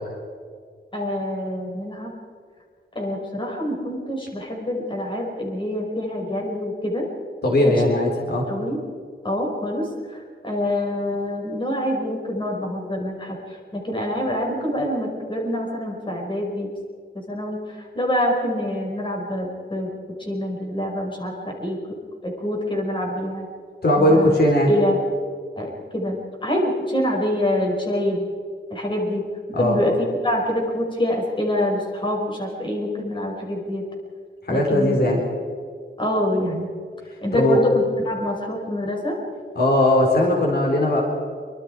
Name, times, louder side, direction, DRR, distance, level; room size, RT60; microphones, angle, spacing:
voice 1, 0.9-2.1 2.9-7.1 7.7-7.8 8.5-8.8 9.2-16.7 17.3-19.9 20.2-23.5 24.0-24.3 24.7-25.0 25.6-28.3 28.7-29.2 29.5-33.9 34.5-35.0 36.0-36.7 37.2-39.2, left 1 dB, 25° left, 0 dB, 5.7 m, -26 dB
voice 2, 7.4-8.5 23.8-24.7 29.5-29.8 34.4-35.2 37.3-37.6 39.5-41.0, left 1 dB, 60° left, -1 dB, 4.2 m, -18 dB
26.0 x 25.0 x 4.9 m, 2.1 s
wide cardioid pair, 160°, 19 cm